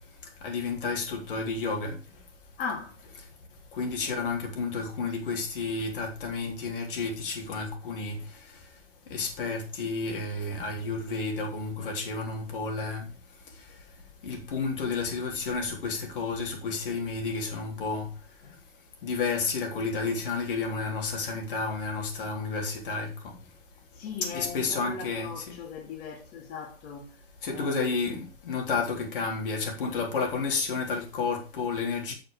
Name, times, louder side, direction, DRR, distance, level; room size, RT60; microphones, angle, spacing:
voice 1, 0.4-2.0 3.7-8.2 9.1-13.1 14.2-18.1 19.0-23.3 24.3-25.6 27.4-32.1, left 4 dB, 60° left, 3.5 m, -31 dB
voice 2, 2.6-3.0 23.9-27.1 27.5-28.0, left 5 dB, 30° left, 2.9 m, -38 dB
7.7 x 6.8 x 5.3 m
hypercardioid pair, 125°, 31 cm